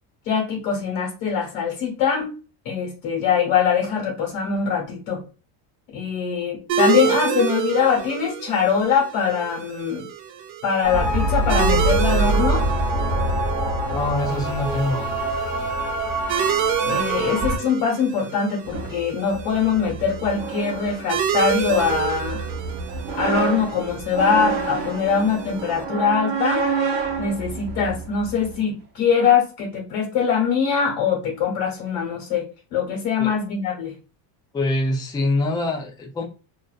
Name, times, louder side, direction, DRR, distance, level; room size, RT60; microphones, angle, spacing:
voice 1, 0.2-2.3 2.6-5.2 5.9-10.0 10.6-12.6 16.8-22.5 23.2-26.7 27.2-32.4 32.7-33.9, left 6 dB, 85° left, -2 dB, 1.2 m, -22 dB
sound 1, 6.7-25.8, right 9 dB, 85° right, 0.6 m, -29 dB
sound 2, 10.8-17.6, right 1 dB, 10° right, 1.2 m, -23 dB
voice 2, 13.8-15.2 33.2-33.4 34.5-36.2, left 2 dB, 10° left, 0 dB, 0.3 m, -24 dB
sound 3, 18.7-28.6, right 5 dB, 50° right, 0.8 m, -29 dB
2.6 x 2.1 x 2.3 m, 0.34 s
cardioid pair, 120°, 48 cm